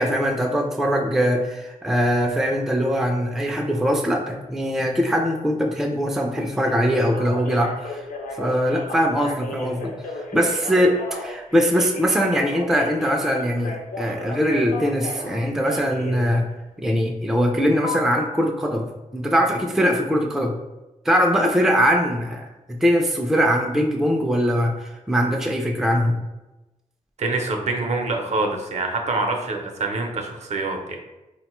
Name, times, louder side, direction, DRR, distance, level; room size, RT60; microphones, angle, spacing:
voice 1, 0.0-8.1 8.4-16.5 16.8-20.6 21.1-26.2, equal, 5° right, 1 dB, 0.3 m, -22 dB
Telephone, 6.7-16.3 17.8-17.9, left 3 dB, 70° left, 0.6 m, -34 dB
voice 2, 27.2-31.0, right 3 dB, 55° right, 2 dB, 0.5 m, -25 dB
4.0 x 2.2 x 2.9 m, 1.0 s
wide cardioid pair, 115°, 14 cm